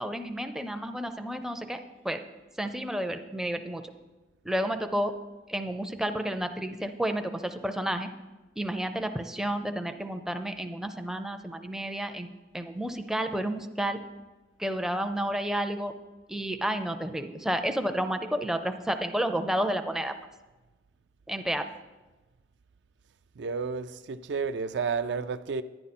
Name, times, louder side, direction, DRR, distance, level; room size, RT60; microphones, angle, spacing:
voice 1, 0.0-2.2 2.6-3.8 4.4-5.2 5.5-8.1 8.6-12.3 12.5-14.0 14.6-15.9 16.3-20.2 21.3-21.7, right 1 dB, 5° right, 6 dB, 0.4 m, -31 dB
voice 2, 23.4-25.6, right 5 dB, 65° right, 11 dB, 0.4 m, -31 dB
11.0 x 9.9 x 4.2 m, 1.2 s
head